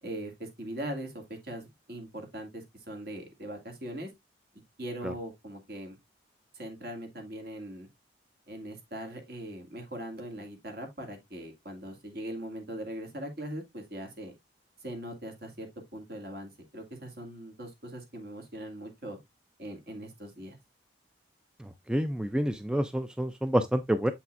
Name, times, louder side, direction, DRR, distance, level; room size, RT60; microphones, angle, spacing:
voice 1, 0.0-4.1 4.8-6.0 6.5-7.9 8.5-14.3 14.8-19.2 19.6-20.6, right 1 dB, 55° right, 2.4 m, -40 dB
voice 2, 21.9-24.1, equal, 5° right, 0.4 m, -28 dB
7.7 x 5.8 x 2.5 m
head